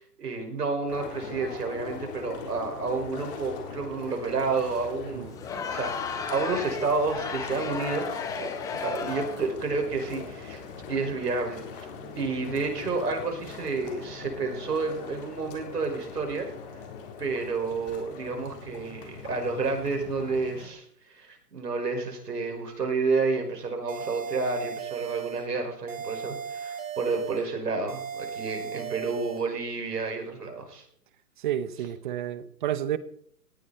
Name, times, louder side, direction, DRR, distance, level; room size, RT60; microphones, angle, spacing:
voice 1, 0.0-5.3 5.7-10.6 10.9-11.9 12.1-16.5 17.2-20.8 21.1-30.8, right 4 dB, 90° right, 5.9 m, -30 dB
sound 1, 0.9-20.7, left 6 dB, 35° left, 3.8 m, -41 dB
Crowd, 5.3-9.5, left 6 dB, 5° left, 1.0 m, -34 dB
sound 2, 23.9-25.5 25.9-27.5 27.9-29.5, right 8 dB, 55° right, 3.3 m, -36 dB
voice 2, 31.4-33.0, right 11 dB, 30° right, 1.0 m, -30 dB
19.0 x 15.0 x 4.4 m
hypercardioid pair, 155°, 46 cm